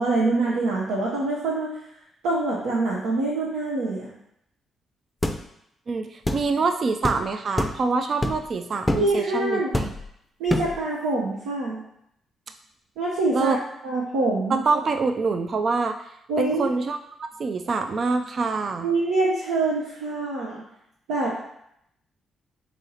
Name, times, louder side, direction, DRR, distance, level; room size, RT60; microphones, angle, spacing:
voice 1, 0.0-1.7 2.2-4.1 8.9-9.7 10.4-11.8 13.0-13.6 13.8-14.6 16.3-16.7 18.8-20.6 21.1-21.3, right 2 dB, 85° right, -5 dB, 0.7 m, -25 dB
sound 1, 5.2-5.4 6.3-6.5 7.0-7.2 7.6-7.8 8.2-8.5 8.9-9.1 9.7-10.1 10.5-10.8, left 1 dB, 15° left, 0.5 m, -25 dB
voice 2, 5.9-9.9 13.3-13.6 14.5-16.0 16.4-18.9, right 4 dB, 55° right, 7 dB, 0.3 m, -25 dB
4.1 x 2.8 x 4.0 m, 0.77 s
supercardioid pair, 50°, 0 cm